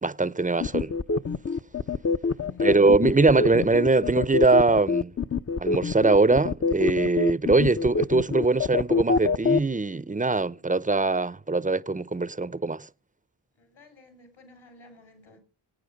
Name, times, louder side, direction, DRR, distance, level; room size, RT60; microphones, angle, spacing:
voice 1, 0.0-0.9 2.6-5.1 5.6-12.9, right 3 dB, 15° right, 0.6 m, -22 dB
sound 1, 0.6-9.6, left 4 dB, 30° left, 0.6 m, -25 dB
voice 2, 2.4-3.2 13.6-15.4, left 2 dB, 75° left, 5.6 m, -51 dB
22.0 x 9.2 x 5.2 m
cardioid pair, 60°, 48 cm